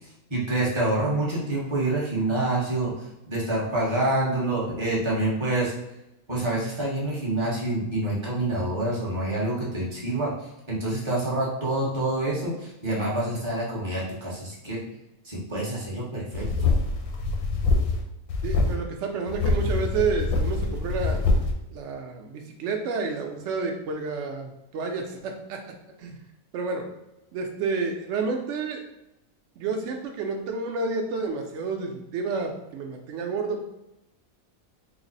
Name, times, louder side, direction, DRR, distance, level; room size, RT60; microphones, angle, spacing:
voice 1, 0.0-5.7 6.3-10.3 10.7-14.8 15.2-16.7, right 2 dB, 25° right, -5 dB, 0.8 m, -27 dB
sound 1, 16.3-18.0 18.3-18.8 19.3-21.5, left 3 dB, 85° left, 1.1 m, -24 dB
voice 2, 18.4-21.2 21.7-25.6 26.0-26.1 26.5-26.9 27.3-28.8 29.6-33.6, right 4 dB, 65° right, 3 dB, 0.8 m, -30 dB
3.3 x 2.0 x 3.9 m, 0.90 s
omnidirectional pair, 1.6 m